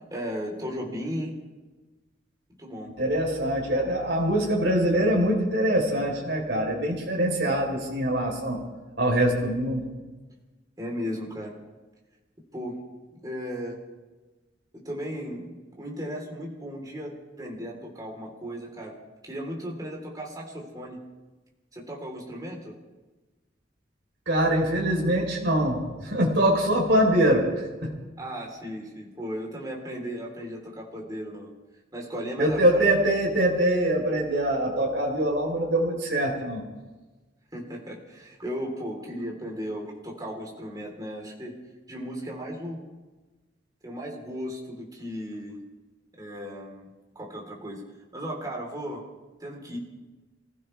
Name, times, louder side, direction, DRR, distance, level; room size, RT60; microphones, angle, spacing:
voice 1, 0.1-1.4 2.6-2.9 10.8-11.6 12.5-12.8 13.2-13.8 14.7-19.0 19.2-21.0 21.7-22.7 28.2-31.5 31.9-32.9 37.5-41.5 41.9-42.8 43.8-45.6 46.2-46.9 47.2-47.8 48.1-49.0 49.4-49.8, equal, 20° right, -1 dB, 3.7 m, -36 dB
voice 2, 3.0-8.6 9.0-9.9 24.3-27.9 32.4-36.6, right 1 dB, 70° right, -1 dB, 3.9 m, -24 dB
26.5 x 15.5 x 3.4 m, 1.2 s
head